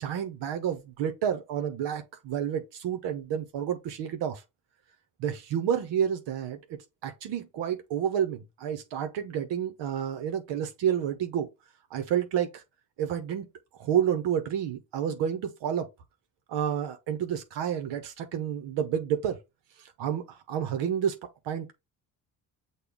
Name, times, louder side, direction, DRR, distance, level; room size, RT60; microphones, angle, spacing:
voice 1, 0.0-4.4 5.2-11.5 11.9-12.6 13.0-13.5 13.8-15.9 16.5-19.4 20.0-21.2 21.4-21.7, right 9 dB, 70° right, 0.9 m, -30 dB
6.6 x 2.3 x 3.5 m
supercardioid pair, 65°, 43 cm